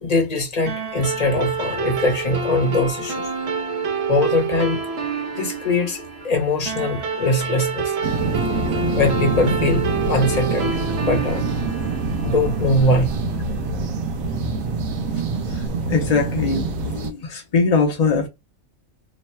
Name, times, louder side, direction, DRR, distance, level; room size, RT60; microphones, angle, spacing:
voice 1, 0.0-3.2 4.1-4.8 5.3-8.0 9.0-10.8 11.0-11.5 12.2-13.1, left 2 dB, 35° left, 0.8 m, -21 dB
sound 1, 0.7-13.4, right 4 dB, 55° right, 0.9 m, -28 dB
sound 2, 8.0-17.1, right 3 dB, 75° right, 1.1 m, -25 dB
voice 2, 15.9-18.3, left 4 dB, 55° left, 0.4 m, -21 dB
3.1 x 2.1 x 4.2 m
omnidirectional pair, 1.5 m